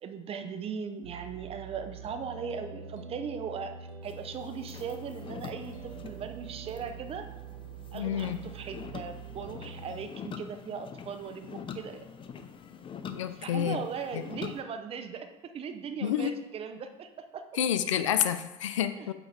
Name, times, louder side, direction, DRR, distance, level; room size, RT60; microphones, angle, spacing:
voice 1, 0.0-7.3 7.9-12.1 13.2-15.3 15.5-17.4 19.0-19.1, right 6 dB, 40° right, 8 dB, 0.7 m, -39 dB
sound 1, 1.0-10.1, right 6 dB, 90° right, 0.5 m, -45 dB
sound 2, 4.0-14.6, left 7 dB, 35° left, 0.6 m, -45 dB
voice 2, 7.9-8.4 13.1-13.8 14.1-14.2 16.0-16.4 17.6-19.1, left 10 dB, 90° left, 11 dB, 0.4 m, -29 dB
7.7 x 3.0 x 4.1 m, 1.0 s
hypercardioid pair, 75°, 15 cm